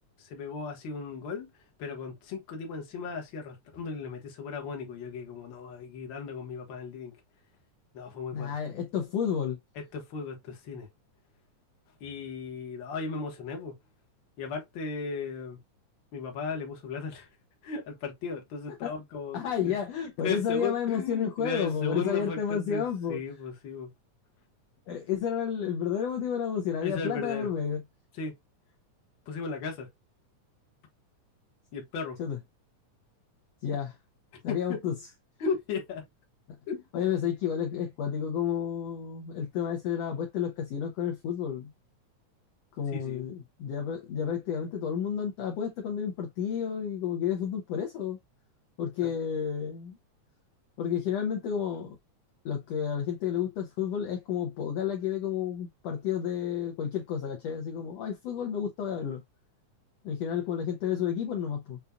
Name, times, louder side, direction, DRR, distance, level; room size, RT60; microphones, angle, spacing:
voice 1, 0.2-1.5 1.8-7.1 7.9-8.5 9.7-10.9 12.0-13.8 14.4-15.6 16.1-17.3 17.6-19.8 20.2-23.9 26.8-27.5 28.2-28.3 29.3-29.9 31.7-32.2 34.5-34.8 35.4-36.1 36.7-36.9 42.9-43.3 49.0-49.1, left 5 dB, 50° left, 1.6 m, -36 dB
voice 2, 8.3-9.6 18.8-18.9 19.3-23.2 24.9-27.8 32.2-32.4 33.6-34.0 34.4-34.9 36.5-36.6 36.9-41.7 42.8-48.2 48.8-50.0 50.8-52.0 52.4-59.2 60.0-61.8, left 8 dB, 70° left, 1.7 m, -31 dB
6.9 x 2.5 x 2.3 m
omnidirectional pair, 3.5 m